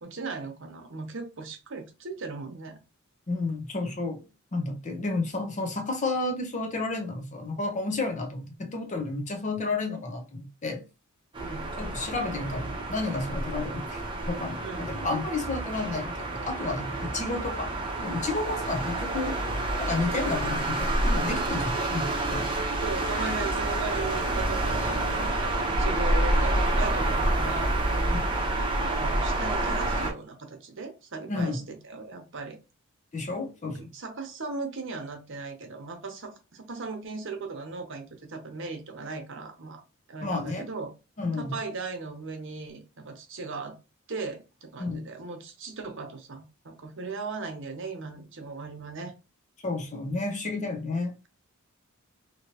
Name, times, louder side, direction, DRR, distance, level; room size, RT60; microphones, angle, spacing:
voice 1, 0.0-2.8 11.4-11.7 14.6-15.1 15.4-15.6 22.8-28.2 28.9-32.6 33.6-39.8 40.1-40.9 41.4-43.8 44.1-49.1, right 4 dB, 60° right, 0.9 m, -38 dB
voice 2, 3.3-10.8 11.8-17.7 18.0-19.4 19.8-22.5 23.3-23.4 28.1-28.3 31.3-31.6 33.1-33.8 40.2-40.7 41.2-41.6 44.8-45.0 49.6-51.1, left 3 dB, 35° left, 0.7 m, -31 dB
sound 1, 11.3-30.1, right 2 dB, 25° right, 0.8 m, -28 dB
3.0 x 2.8 x 2.9 m
head